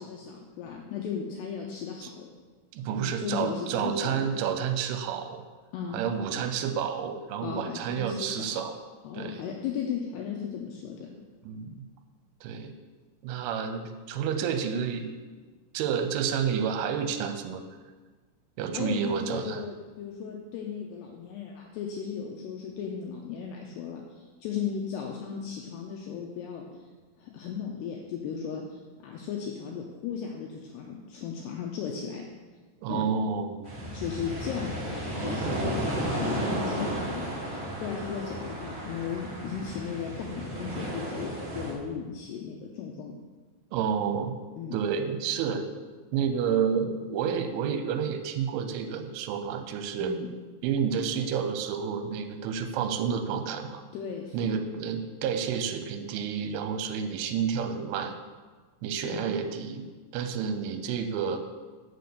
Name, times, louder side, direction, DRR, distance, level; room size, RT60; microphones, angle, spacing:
voice 1, 0.0-2.3 2.9-4.3 5.7-6.0 7.4-8.6 9.0-11.1 18.7-26.9 27.2-32.2 32.9-33.1 33.9-43.2 44.6-44.8 50.0-50.3 53.9-54.7 59.0-59.3, left 7 dB, 90° left, 0 dB, 2.4 m, -36 dB
voice 2, 2.7-5.4 5.9-8.7 9.1-9.4 11.5-11.8 12.4-12.7 13.2-15.1 15.7-17.6 18.6-19.6 32.8-33.6 43.7-44.3 44.7-45.7 46.1-50.1 50.6-53.8 54.3-58.1 58.8-61.4, right 7 dB, 80° right, 7 dB, 3.1 m, -30 dB
sound 1, 33.6-41.7, right 1 dB, 65° right, 1.2 m, -33 dB
6.8 x 6.7 x 6.6 m, 1.4 s
omnidirectional pair, 5.6 m